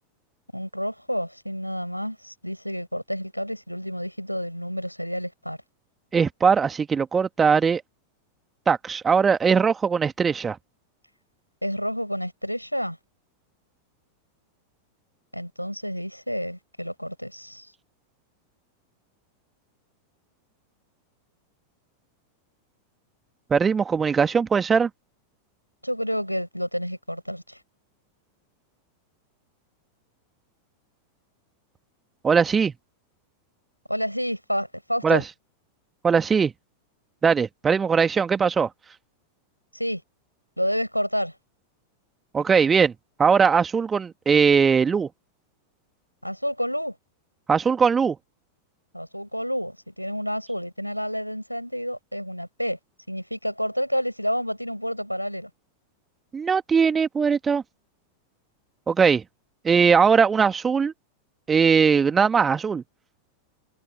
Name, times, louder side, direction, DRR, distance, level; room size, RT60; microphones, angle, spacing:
voice 1, 0.5-5.6 11.6-13.0 15.3-17.7 25.8-27.6 33.9-35.2 39.7-40.0 40.6-41.3 46.2-47.0 48.9-52.8 53.1-55.5, equal, 90° left, 7.6 m, -29 dB
voice 2, 6.1-7.8 8.7-10.6 23.5-24.9 32.2-32.7 35.0-35.2 36.0-36.5 37.2-38.7 42.3-42.9 43.2-45.1 47.5-48.2 56.3-57.6 58.9-59.2 59.6-60.9 61.5-62.8, right 6 dB, 20° right, 2.1 m, -20 dB
figure-of-eight pair, 90°, 0 cm